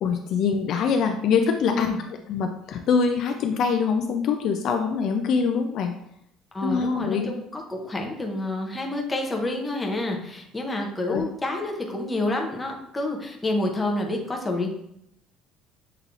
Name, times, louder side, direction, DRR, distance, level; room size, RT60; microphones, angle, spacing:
voice 1, 0.0-1.9 2.3-5.9 6.6-7.3 11.1-11.2, left 5 dB, 45° left, 4 dB, 0.3 m, -24 dB
voice 2, 6.5-14.7, left 2 dB, 10° left, 1 dB, 0.7 m, -28 dB
6.7 x 3.2 x 2.5 m, 0.76 s
cardioid pair, 165°, 0 cm